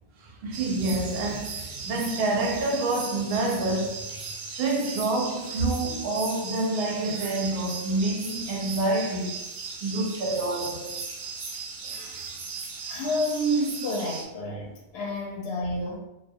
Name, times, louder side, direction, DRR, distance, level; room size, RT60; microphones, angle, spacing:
voice 1, 0.2-4.2 4.5-9.4 9.8-11.0 11.8-12.4, right 2 dB, 65° right, 0.7 m, -28 dB
sound 1, 0.5-14.2, right 4 dB, 90° right, 1.0 m, -37 dB
voice 2, 12.9-16.0, equal, 65° left, 0.7 m, -29 dB
2.3 x 2.0 x 2.6 m
omnidirectional pair, 1.3 m